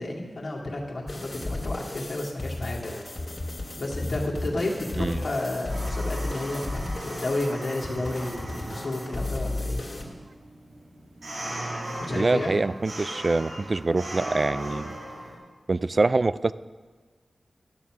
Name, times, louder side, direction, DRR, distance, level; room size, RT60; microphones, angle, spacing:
voice 1, 0.0-3.0 3.8-9.8 12.0-12.6, left 2 dB, 65° left, -2 dB, 2.1 m, -31 dB
sound 1, 1.1-10.0, left 2 dB, 40° left, 2.4 m, -34 dB
sound 2, 5.7-15.4, right 1 dB, 85° right, 2.5 m, -38 dB
voice 2, 12.1-15.0 15.7-16.5, right 3 dB, 50° right, 16 dB, 0.3 m, -25 dB
12.5 x 7.1 x 6.1 m, 1.4 s
cardioid pair, 40°, 0 cm